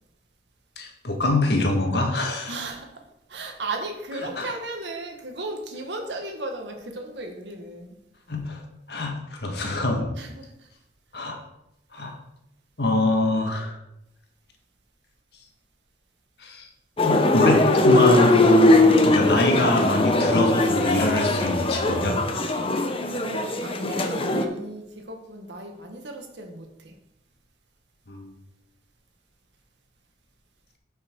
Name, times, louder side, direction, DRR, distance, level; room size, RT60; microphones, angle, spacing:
voice 1, 0.8-2.6 4.4-4.5 8.3-8.6 8.9-10.1 11.1-11.4 11.9-12.1 12.8-13.8 16.4-16.7 17.0-22.2 28.1-28.3, left 2 dB, 65° left, 2 dB, 1.7 m, -24 dB
voice 2, 2.5-2.9 3.3-8.0 10.2-10.5 23.1-26.9, right 2 dB, 80° right, 3 dB, 1.7 m, -35 dB
sound 1, 17.0-24.5, left 2 dB, 30° left, 0.9 m, -20 dB
9.6 x 5.9 x 4.6 m, 0.85 s
head